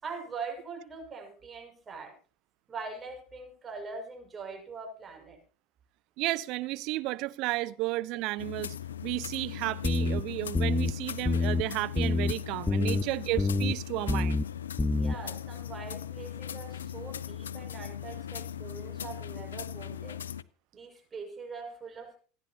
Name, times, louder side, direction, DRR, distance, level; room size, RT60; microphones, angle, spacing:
voice 1, 0.0-2.1 2.7-5.4 12.8-13.1 15.0-20.2 20.7-22.2, right 4 dB, 25° right, 6.3 m, -42 dB
voice 2, 6.2-8.8 9.0-14.4, right 19 dB, 55° right, 0.8 m, -33 dB
sound 1, 8.4-20.4, left 9 dB, 80° left, 0.6 m, -39 dB
sound 2, 9.8-10.2 10.5-10.9 11.3-11.6 12.0-12.3 12.7-13.0 13.4-13.7 14.1-14.4 14.8-15.2, left 3 dB, 15° left, 0.6 m, -26 dB
27.5 x 10.5 x 3.0 m
figure-of-eight pair, 75°, 0 cm